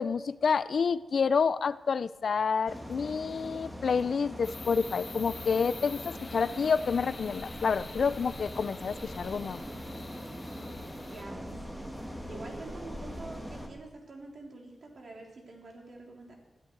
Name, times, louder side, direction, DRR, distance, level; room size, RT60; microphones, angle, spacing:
voice 1, 0.0-9.6, left 5 dB, 55° left, 16 dB, 0.4 m, -29 dB
sound 1, 2.7-13.7, equal, 5° right, 1.7 m, -42 dB
sound 2, 4.4-11.2, left 3 dB, 35° left, 1.8 m, -47 dB
voice 2, 11.1-16.4, right 2 dB, 50° right, 0 dB, 3.5 m, -46 dB
20.0 x 13.5 x 4.6 m, 1.1 s
wide cardioid pair, 160°, 0 cm